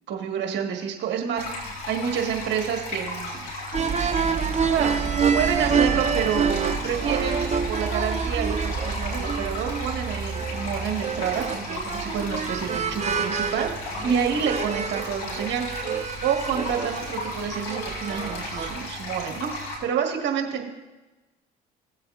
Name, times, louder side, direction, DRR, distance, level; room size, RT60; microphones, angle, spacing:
voice 1, 0.1-3.5 4.7-5.0 5.3-7.4 7.7-13.7 14.0-15.9 16.2-19.5 19.8-20.7, right 7 dB, 65° right, 2 dB, 1.6 m, -28 dB
Water Fountain close, 1.4-19.8, left 2 dB, 90° left, 2.3 m, -35 dB
sound 1, 3.7-18.8, right 6 dB, 35° right, 0.7 m, -27 dB
16.0 x 7.5 x 2.5 m, 1.1 s
supercardioid pair, 65°, 20 cm